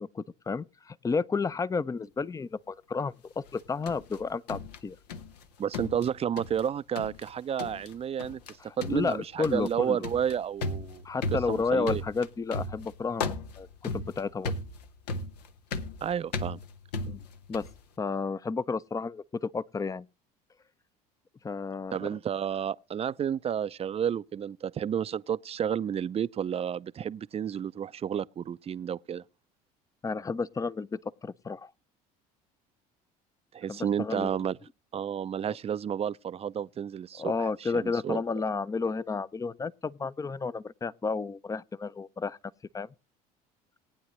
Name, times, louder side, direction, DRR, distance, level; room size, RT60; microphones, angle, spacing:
voice 1, 0.0-5.0 8.7-10.0 11.0-14.6 17.1-17.2 17.5-17.6 18.0-20.1 21.4-22.1 30.0-31.7 33.7-34.3 37.2-42.4 42.7-42.9, left 4 dB, 15° left, 0.5 m, -32 dB
sound 1, 3.5-5.4 5.7-6.7 7.0-7.3 7.6-7.9 8.2-8.5 8.8-17.8, left 3 dB, 85° left, 1.0 m, -36 dB
voice 2, 5.6-8.4 8.8-11.0 11.5-12.0 16.0-16.6 21.9-29.2 33.5-34.6 34.9-38.2, right 8 dB, 30° right, 0.5 m, -31 dB
18.5 x 9.4 x 3.1 m
hypercardioid pair, 70°, 20 cm